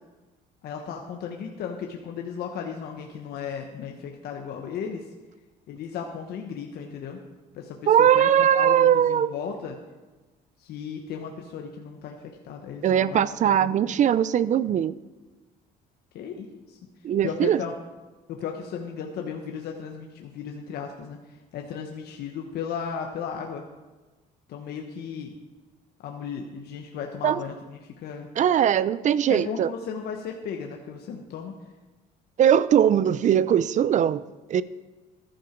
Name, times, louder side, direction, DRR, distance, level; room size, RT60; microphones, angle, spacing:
voice 1, 0.6-5.1 5.7-7.2 7.5-9.8 10.6-13.8 16.1-16.8 17.2-17.7 18.3-23.6 24.5-25.3 26.0-28.3 29.3-31.5, left 7 dB, 70° left, 2 dB, 1.3 m, -35 dB
voice 2, 7.9-9.3 12.8-14.9 17.0-17.6 27.2-27.4 28.4-29.7 32.4-34.2 34.5-34.6, right 9 dB, 45° right, 17 dB, 0.5 m, -20 dB
14.0 x 12.0 x 4.5 m, 1.2 s
cardioid pair, 110°, 17 cm